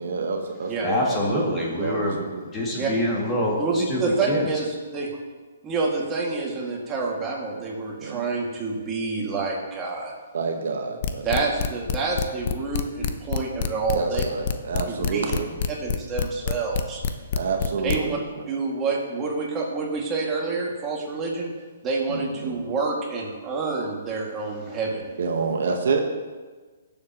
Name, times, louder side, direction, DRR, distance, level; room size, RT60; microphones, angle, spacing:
voice 1, 0.0-2.4 8.0-8.2 10.3-11.5 13.9-15.5 17.3-18.2 22.1-22.6 25.2-26.0, right 4 dB, 70° right, 4 dB, 1.2 m, -28 dB
voice 2, 0.8-4.5, left 1 dB, 20° left, -3 dB, 2.2 m, -26 dB
voice 3, 3.6-5.1 5.6-10.1 11.2-14.2 14.9-15.3 15.8-17.0 17.8-18.2 18.5-21.5 21.8-25.0, right 4 dB, 20° right, -3 dB, 2.1 m, -28 dB
sound 1, 11.0-18.0, left 7 dB, 45° left, 0.7 m, -25 dB
17.5 x 7.2 x 3.0 m, 1.4 s
hypercardioid pair, 150°, 0 cm